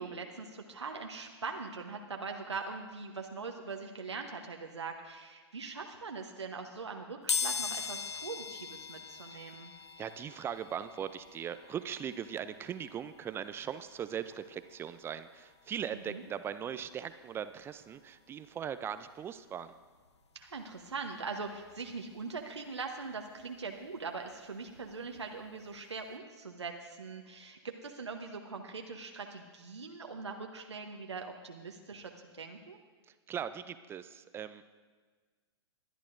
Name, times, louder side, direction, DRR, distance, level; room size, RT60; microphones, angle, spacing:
voice 1, 0.0-9.7 16.1-16.2 20.3-32.1 32.4-32.8, right 4 dB, 85° right, 3 dB, 1.0 m, -42 dB
sound 1, 7.3-18.0 18.4-18.5 19.7-19.8 20.1-22.1 22.5-25.1 25.5-25.7 26.0-26.1, left 6 dB, 85° left, 0.8 m, -41 dB
voice 2, 10.0-19.7 33.1-34.6, right 8 dB, 15° right, 12 dB, 0.4 m, -40 dB
22.0 x 11.0 x 2.6 m, 1.5 s
hypercardioid pair, 115°, 14 cm